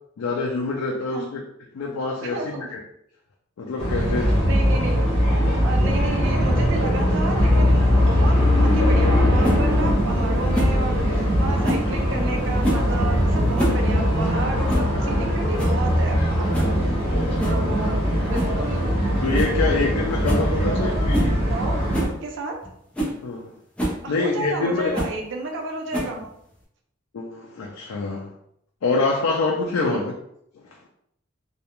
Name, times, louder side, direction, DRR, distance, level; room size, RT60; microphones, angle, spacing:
voice 1, 0.2-1.4 1.7-2.8 3.6-4.4 17.3-17.7 19.2-21.4 23.2-23.5 24.1-25.0 27.1-28.3 28.8-30.1, left 3 dB, 90° left, -1 dB, 0.4 m, -26 dB
voice 2, 2.2-2.7 4.4-5.1 5.6-17.0 17.5-19.0 20.6-21.0 21.5-21.8 22.2-22.6 24.0-26.3 29.8-30.1, right 2 dB, 60° right, 2 dB, 0.4 m, -32 dB
sound 1, 3.8-22.1, equal, 25° left, 0.8 m, -21 dB
sound 2, 9.4-9.6 10.5-10.8 11.6-11.9 12.6-12.9 13.4-13.8 14.1-14.2 14.7-14.9 15.3-15.4 15.6-15.8 16.5-16.8 17.4-17.6 18.3-18.6 18.9-19.0 19.3-19.6 19.8-19.9 20.2-20.5 21.1-21.3 21.9-22.1 22.6-22.7 22.9-23.2 23.8-24.0 24.9-25.2 25.9-26.3, equal, 5° left, 0.5 m, -26 dB
2.3 x 2.1 x 2.9 m, 0.75 s
head